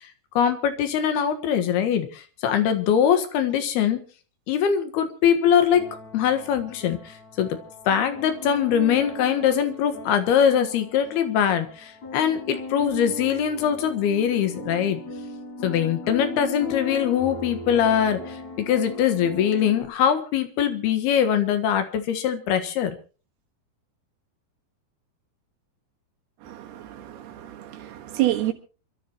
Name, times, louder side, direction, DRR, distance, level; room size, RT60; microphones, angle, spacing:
voice 1, 0.4-4.0 4.5-5.9 6.1-7.5 7.9-15.0 15.6-23.0, left 9 dB, 85° left, 3.6 m, -22 dB
sound 1, 5.7-19.8, left 1 dB, 50° left, 6.0 m, -37 dB
voice 2, 26.4-28.5, right 14 dB, 85° right, 3.7 m, -28 dB
27.0 x 13.0 x 3.0 m
omnidirectional pair, 4.4 m